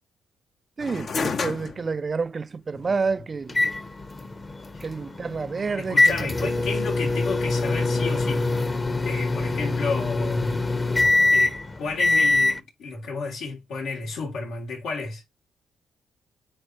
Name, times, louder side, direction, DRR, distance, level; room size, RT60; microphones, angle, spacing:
sound 1, 0.8-10.0, left 5 dB, 50° left, 0.9 m, -37 dB
voice 1, 0.8-3.6 4.8-6.5, right 4 dB, 35° right, 0.3 m, -29 dB
sound 2, 3.5-12.6, left 2 dB, 25° left, 1.1 m, -24 dB
voice 2, 5.8-8.5 9.0-10.6 11.3-15.2, left 4 dB, 80° left, 3.6 m, -32 dB
9.7 x 3.9 x 3.2 m
cardioid pair, 90°, 0 cm